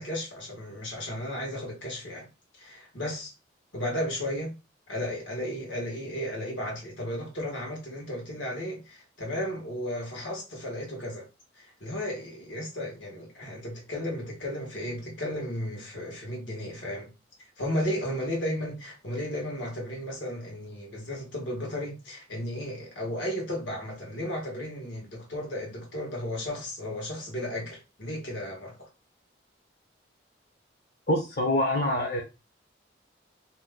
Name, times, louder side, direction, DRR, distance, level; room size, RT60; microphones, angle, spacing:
voice 1, 0.0-2.3 2.6-3.3 3.7-4.5 4.9-11.2 11.6-17.1 17.6-28.9, left 1 dB, 80° left, 1.4 m, -34 dB
voice 2, 31.1-32.2, left 1 dB, 50° left, 0.7 m, -25 dB
2.9 x 2.2 x 3.6 m
head